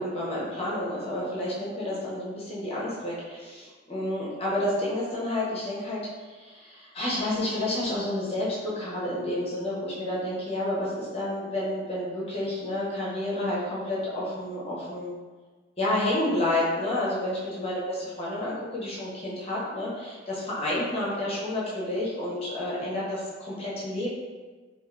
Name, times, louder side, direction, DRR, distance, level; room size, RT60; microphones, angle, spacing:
voice 1, 0.0-6.0 6.3-15.1 15.8-24.1, left 1 dB, 30° left, -7 dB, 0.8 m, -30 dB
3.5 x 2.5 x 2.4 m, 1.4 s
head